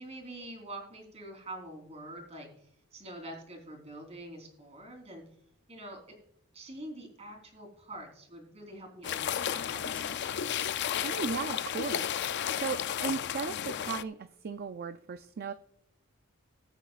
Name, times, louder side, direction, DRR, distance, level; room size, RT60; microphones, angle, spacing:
voice 1, 0.0-2.5 2.9-5.2 5.7-6.0 6.5-10.7, right 1 dB, 30° right, 1 dB, 3.7 m, -45 dB
sound 1, 9.0-14.0, left 9 dB, 55° left, 0.4 m, -33 dB
voice 2, 11.0-15.5, right 5 dB, 50° right, 10 dB, 0.4 m, -37 dB
21.0 x 8.1 x 2.4 m, 0.74 s
head